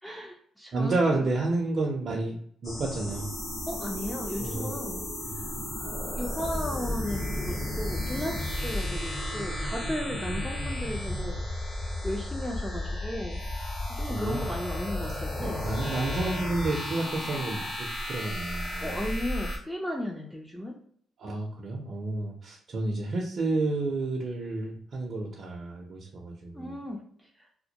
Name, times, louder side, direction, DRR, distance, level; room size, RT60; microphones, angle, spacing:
voice 1, 0.0-1.3 3.7-5.1 5.3-5.5 6.1-11.4 12.0-13.4 13.9-15.7 18.8-20.8 26.5-27.6, left 1 dB, 5° left, -2 dB, 0.4 m, -35 dB
voice 2, 0.7-2.4 2.6-3.3 4.4-4.7 14.0-14.5 15.4-18.9 21.2-26.7, right 2 dB, 50° right, -2 dB, 0.5 m, -30 dB
sound 1, 2.6-19.6, left 1 dB, 35° left, 0.9 m, -33 dB
2.2 x 2.1 x 2.8 m, 0.62 s
cardioid pair, 90°, 0 cm